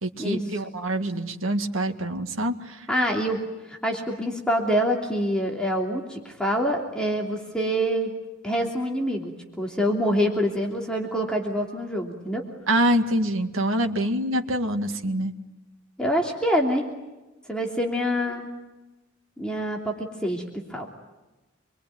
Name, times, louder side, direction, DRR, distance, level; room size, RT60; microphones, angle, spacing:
voice 1, 0.0-2.9 12.7-15.3, right 1 dB, 75° right, 5 dB, 2.1 m, -25 dB
voice 2, 2.9-3.4 3.7-8.1 8.4-12.4 16.0-16.8 17.5-18.5 19.4-20.4 20.7-20.9, equal, 5° left, 0 dB, 3.1 m, -26 dB
27.0 x 23.5 x 9.3 m, 1.1 s
head